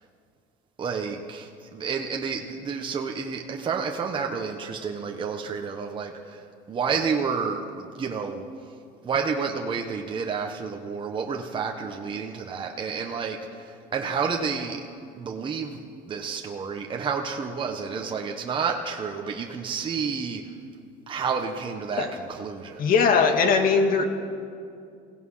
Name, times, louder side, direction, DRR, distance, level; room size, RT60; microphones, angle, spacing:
voice 1, 0.8-8.5 9.0-14.8 15.2-15.8 16.1-20.5 21.1-22.8, right 5 dB, 25° right, 2 dB, 1.3 m, -30 dB
voice 2, 22.8-24.1, left 5 dB, 50° left, 5 dB, 2.1 m, -20 dB
28.5 x 17.0 x 5.7 m, 2.4 s
cardioid pair, 150°, 18 cm